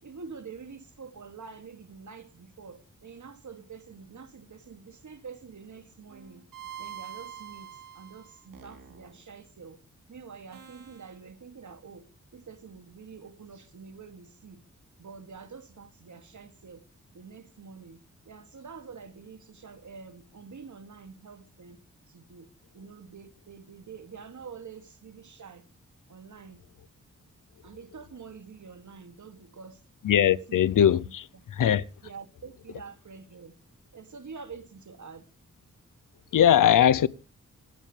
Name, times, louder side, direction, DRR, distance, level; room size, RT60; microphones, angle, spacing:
voice 1, 0.0-6.4 6.8-9.8 10.1-14.6 15.0-16.8 17.1-21.8 22.1-22.5 22.7-25.6 26.1-26.6 27.6-29.8 30.2-30.7 31.0-31.4 32.0-33.6 33.9-35.2, right 5 dB, 65° right, 2.5 m, -46 dB
sound 1, 6.1-9.2 10.5-11.1, right 9 dB, 90° right, 4.0 m, -45 dB
voice 2, 30.0-31.3 31.6-31.8 36.3-37.1, left 10 dB, 80° left, 0.7 m, -20 dB
26.5 x 9.2 x 3.3 m
cardioid pair, 50°, 32 cm